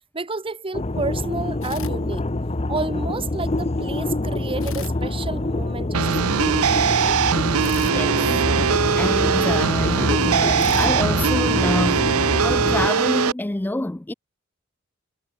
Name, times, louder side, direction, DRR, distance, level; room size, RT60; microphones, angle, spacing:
voice 1, 0.1-2.2 2.7-6.5, right 3 dB, 25° right, 1.0 m, -30 dB
sound 1, 0.7-12.9, left 2 dB, 30° left, 0.9 m, -25 dB
sound 2, 1.6-2.8 4.6-6.0 7.6-9.3 10.6-12.1, left 6 dB, 65° left, 6.2 m, -42 dB
sound 3, 5.9-13.3, right 7 dB, 80° right, 0.7 m, -21 dB
voice 2, 7.8-8.3 8.6-14.1, left 1 dB, 10° left, 0.4 m, -27 dB
head